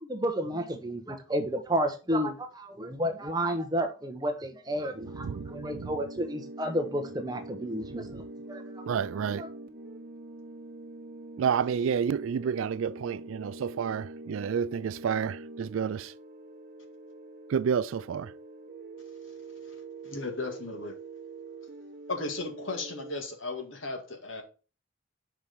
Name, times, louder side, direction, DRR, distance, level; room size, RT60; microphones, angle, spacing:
voice 1, 0.0-8.6 9.4-9.5, equal, 20° right, 0.9 m, -31 dB
sound 1, 4.9-23.2, right 2 dB, 45° right, 1.1 m, -44 dB
voice 2, 5.1-5.9 8.9-9.4 11.4-16.1 17.5-18.3, right 7 dB, 75° right, 0.3 m, -30 dB
voice 3, 20.0-21.0 22.1-24.4, left 3 dB, 70° left, 1.8 m, -36 dB
5.7 x 4.7 x 5.2 m
head